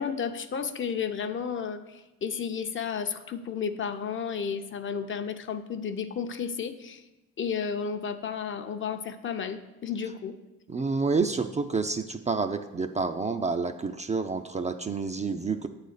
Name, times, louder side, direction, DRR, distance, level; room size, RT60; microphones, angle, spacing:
voice 1, 0.0-7.0 7.4-10.4, left 6 dB, 40° left, 7 dB, 0.6 m, -32 dB
voice 2, 10.7-15.7, right 4 dB, 25° right, 7 dB, 0.4 m, -29 dB
8.3 x 4.1 x 6.5 m, 1.0 s
cardioid pair, 90°, 30 cm